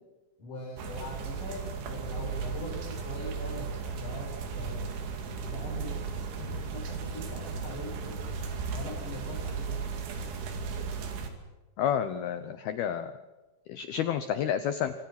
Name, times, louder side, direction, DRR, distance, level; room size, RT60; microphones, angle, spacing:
voice 1, 0.4-4.3 4.5-5.1 5.5-8.2 8.7-10.0, left 1 dB, 40° left, -5 dB, 8.9 m, -42 dB
sound 1, 0.8-11.3, right 5 dB, 70° right, 4.8 m, -36 dB
sound 2, 1.2-11.8, left 4 dB, 60° left, 2.3 m, -51 dB
voice 2, 11.8-13.1 13.7-14.9, left 9 dB, 75° left, 10 dB, 2.3 m, -30 dB
28.0 x 24.0 x 6.0 m, 1.2 s
omnidirectional pair, 5.7 m